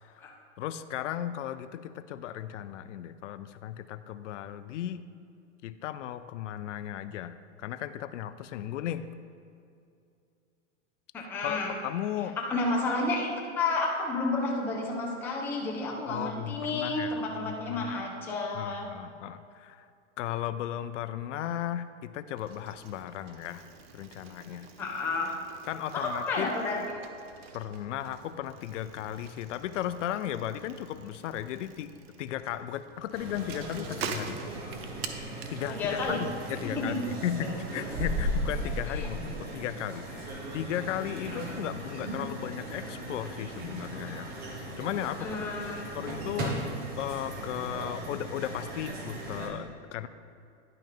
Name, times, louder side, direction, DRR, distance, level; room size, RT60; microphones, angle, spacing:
voice 1, 0.6-5.0 5.6-9.1 11.2-12.4 16.1-17.2 17.4-17.9 18.5-19.9 20.2-23.6 23.9-24.7 25.7-26.5 27.5-31.9 32.2-34.4 35.5-45.5 45.9-46.6 47.0-50.1, left 11 dB, 80° left, 13 dB, 0.5 m, -36 dB
voice 2, 11.1-11.7 12.4-13.3 13.6-18.9 24.8-25.3 25.9-27.0 35.7-36.2 36.6-37.1 38.9-39.1 41.3-41.6 45.2-45.8, left 3 dB, 5° left, -1 dB, 0.3 m, -31 dB
Bicycle, 22.4-37.9, right 6 dB, 55° right, 0.8 m, -46 dB
sound 1, 33.1-49.5, right 1 dB, 25° right, 1.1 m, -37 dB
10.5 x 5.4 x 3.6 m, 2.4 s
supercardioid pair, 145°, 36 cm